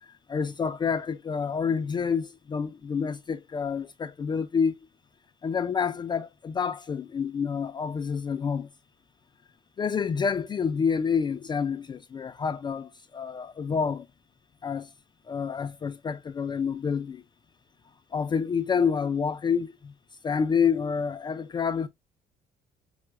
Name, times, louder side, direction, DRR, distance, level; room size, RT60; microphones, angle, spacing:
voice 1, 0.0-4.7 5.4-8.7 9.8-14.1 14.6-14.9 15.3-17.2 18.1-19.9 20.2-21.9, left 6 dB, 25° left, 0.3 m, -28 dB
5.5 x 2.1 x 2.4 m
cardioid pair, 110°, 17 cm